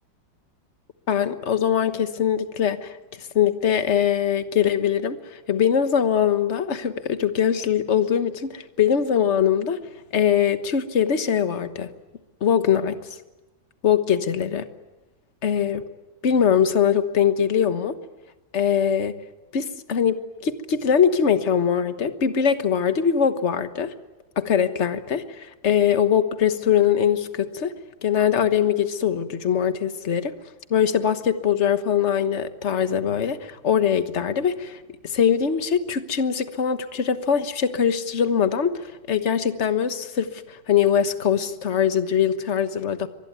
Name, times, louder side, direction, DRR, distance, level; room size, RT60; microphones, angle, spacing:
voice 1, 1.1-9.8 10.1-11.9 12.4-13.2 13.8-14.6 15.4-15.9 16.2-17.9 18.5-19.2 19.5-23.9 24.4-27.7 28.0-30.3 30.7-43.1, left 8 dB, 40° left, 10 dB, 1.4 m, -22 dB
24.0 x 21.0 x 9.4 m, 1.1 s
omnidirectional pair, 2.1 m